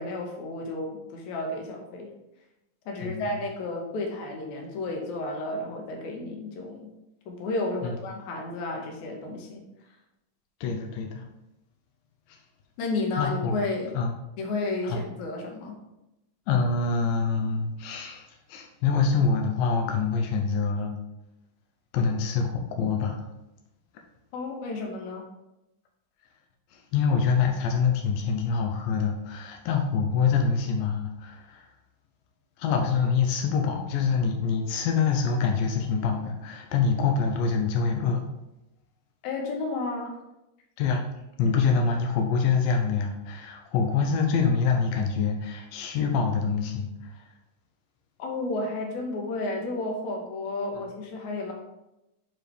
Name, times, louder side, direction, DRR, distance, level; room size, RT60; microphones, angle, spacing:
voice 1, 0.0-2.1 2.9-7.0 7.3-9.6 12.8-14.0 14.4-15.8 24.3-25.2 39.2-40.2 48.2-51.5, left 2 dB, 65° left, 1 dB, 2.3 m, -32 dB
voice 2, 3.0-3.4 7.8-8.0 10.6-11.2 13.2-13.6 14.0-14.2 14.8-15.0 16.5-20.9 21.9-23.3 26.7-31.7 32.6-38.2 40.8-41.1 41.4-46.9, left 5 dB, 85° left, 3 dB, 2.3 m, -25 dB
7.7 x 4.6 x 3.3 m, 0.93 s
omnidirectional pair, 4.0 m